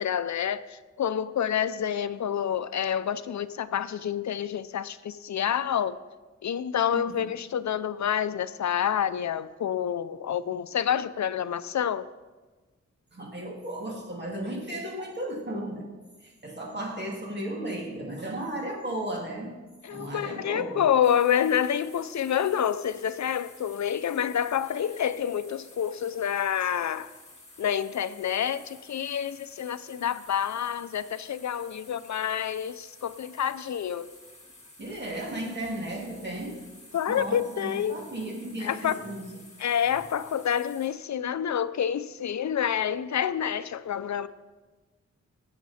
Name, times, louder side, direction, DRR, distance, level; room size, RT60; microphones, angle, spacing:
voice 1, 0.0-6.0 6.4-12.1 19.8-27.1 27.6-34.1 36.9-38.0 38.6-39.1 39.6-44.3, left 9 dB, 70° left, 0.5 m, -28 dB
voice 2, 13.1-15.9 16.2-19.6 19.9-20.9 34.8-36.6 37.1-39.4, right 1 dB, 35° right, 2.4 m, -35 dB
sound 1, 21.0-40.9, left 2 dB, 20° left, 2.0 m, -52 dB
19.5 x 8.1 x 4.2 m
wide cardioid pair, 150°, 29 cm